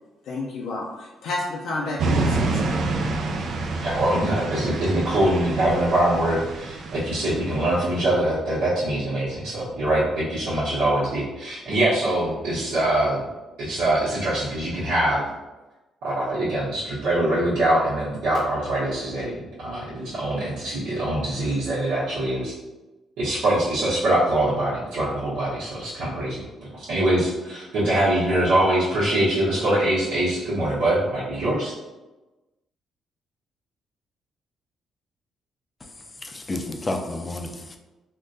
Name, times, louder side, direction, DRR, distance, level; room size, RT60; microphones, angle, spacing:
voice 1, 0.3-2.7, left 2 dB, 80° left, -3 dB, 0.4 m, -30 dB
sound 1, 2.0-8.1, right 3 dB, 65° right, 0.4 m, -28 dB
voice 2, 3.8-13.2 13.6-15.2 16.0-22.5 23.2-26.4 26.9-31.7, right 1 dB, 85° right, -12 dB, 1.0 m, -23 dB
voice 3, 36.2-37.8, left 2 dB, 25° left, 5 dB, 0.4 m, -30 dB
3.6 x 2.2 x 2.6 m, 1.1 s
cardioid pair, 90°, 0 cm